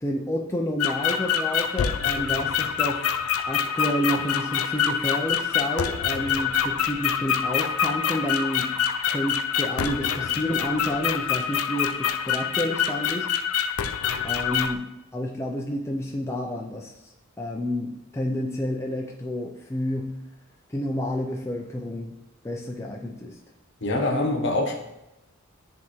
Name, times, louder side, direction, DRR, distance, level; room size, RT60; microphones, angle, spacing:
voice 1, 0.0-3.1 3.5-8.8 9.1-13.3 14.2-14.9 15.1-16.9 17.4-20.2 20.7-22.2 22.4-23.4, equal, 15° left, 0.4 m, -29 dB
sound 1, 0.8-14.7, left 8 dB, 80° left, 0.4 m, -26 dB
voice 2, 23.8-24.7, left 2 dB, 60° left, 1.0 m, -24 dB
9.7 x 3.6 x 3.1 m
head